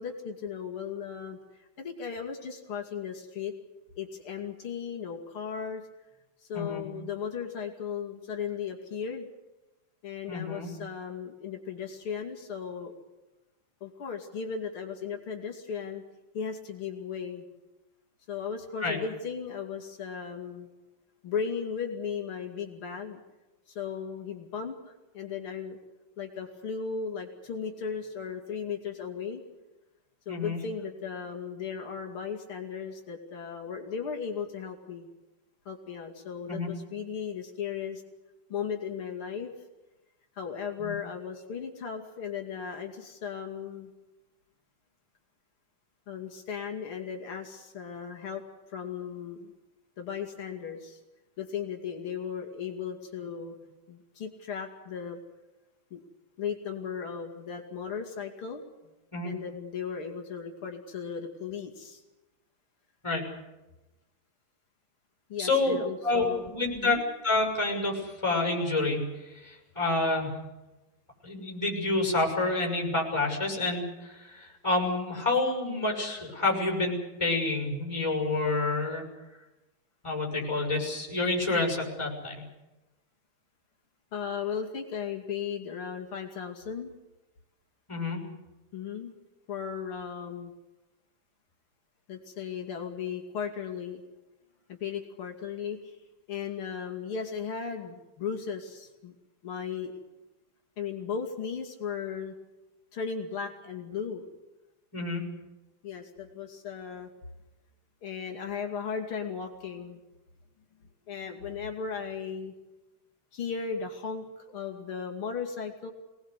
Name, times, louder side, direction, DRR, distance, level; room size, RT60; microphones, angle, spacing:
voice 1, 0.0-3.5 4.0-5.8 6.4-9.3 10.0-12.9 13.8-16.0 16.3-17.4 18.3-20.7 21.2-23.2 23.7-25.8 26.2-29.4 30.3-35.1 35.7-38.0 38.5-39.5 40.4-43.9 46.1-48.4 48.7-49.5 50.0-51.0 51.4-55.2 55.9-56.0 56.4-58.6 59.2-62.0 65.3-66.5 66.8-67.0 84.1-86.9 88.7-89.1 89.5-90.5 92.1-94.0 94.7-96.0 96.3-99.1 99.4-100.0 100.8-102.3 102.9-104.3 105.8-107.1 108.0-110.0 111.1-112.5 113.3-115.9, left 6 dB, 85° left, 2 dB, 3.3 m, -36 dB
voice 2, 6.5-6.8 10.3-10.7 18.8-19.0 30.3-30.6 36.5-36.7 40.8-40.9 59.1-59.3 63.0-63.2 65.4-65.8 66.0-70.4 71.2-79.0 80.0-82.4 87.9-88.2 104.9-105.2, left 2 dB, 15° left, 1 dB, 6.4 m, -28 dB
25.5 x 19.0 x 8.2 m, 1.0 s
omnidirectional pair, 2.3 m